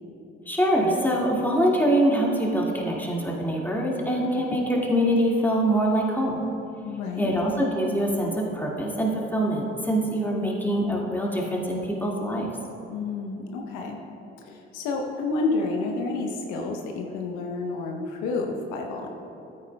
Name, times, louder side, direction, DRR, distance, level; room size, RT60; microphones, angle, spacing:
voice 1, 0.5-6.4 7.2-12.5, equal, 5° left, -3 dB, 2.0 m, -24 dB
voice 2, 6.8-7.3 12.9-14.0 14.4-19.1, left 3 dB, 70° left, 1 dB, 0.9 m, -30 dB
13.5 x 8.8 x 2.3 m, 2.8 s
hypercardioid pair, 50°, 32 cm